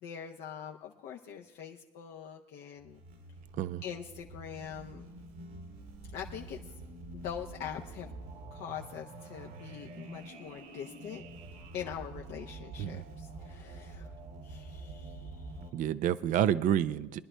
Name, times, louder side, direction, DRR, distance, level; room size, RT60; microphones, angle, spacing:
voice 1, 0.0-3.0 3.8-5.1 6.1-6.6 7.1-8.1 8.5-11.2 11.7-14.1 14.4-15.7, left 8 dB, 60° left, 1 dB, 0.8 m, -43 dB
sound 1, 2.8-15.7, right 2 dB, 75° right, 2.2 m, -47 dB
voice 2, 15.7-17.2, right 10 dB, 40° right, 14 dB, 0.4 m, -29 dB
23.5 x 11.0 x 2.2 m, 1.2 s
supercardioid pair, 105°, 20 cm